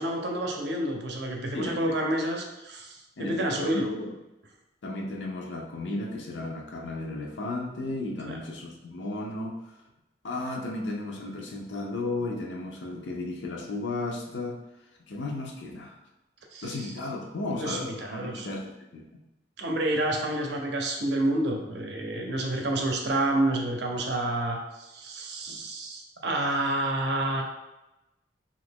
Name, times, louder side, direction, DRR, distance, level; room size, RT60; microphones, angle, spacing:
voice 1, 0.0-3.8 8.2-8.4 16.5-16.8 17.6-18.5 19.6-27.4, right 1 dB, 70° right, 2 dB, 0.6 m, -29 dB
voice 2, 1.5-2.0 3.2-4.1 4.8-9.6 10.2-14.6 15.1-16.0 16.6-19.1 25.5-25.6, left 2 dB, 80° left, 1 dB, 0.5 m, -34 dB
2.8 x 2.5 x 3.4 m, 0.98 s
head